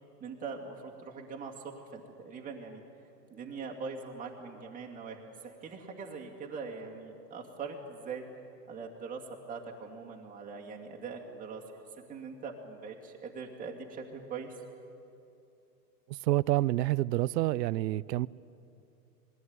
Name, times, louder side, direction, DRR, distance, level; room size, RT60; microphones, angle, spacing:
voice 1, 0.2-2.8 3.3-8.2 8.7-11.8 12.1-14.6, right 5 dB, 15° right, 2.4 m, -42 dB
voice 2, 16.1-18.3, right 16 dB, 80° right, 0.6 m, -28 dB
22.0 x 16.0 x 9.6 m
hypercardioid pair, 145°, 49 cm